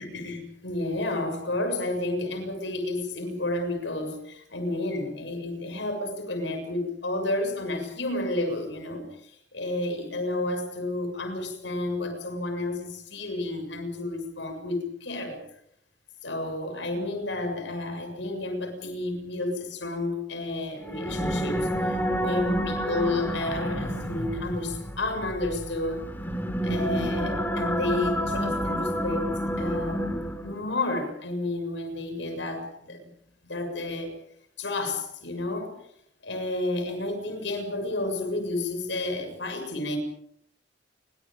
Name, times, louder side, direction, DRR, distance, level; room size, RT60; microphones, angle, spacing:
voice 1, 0.0-9.1 9.5-15.4 16.2-21.7 22.2-26.0 26.6-30.1 30.4-33.0 33.4-34.2 34.6-35.7 36.2-40.0, left 2 dB, 70° left, 7 dB, 7.2 m, -31 dB
sound 1, 20.8-30.7, equal, 10° left, 3.1 m, -29 dB
29.5 x 24.0 x 5.3 m, 0.70 s
head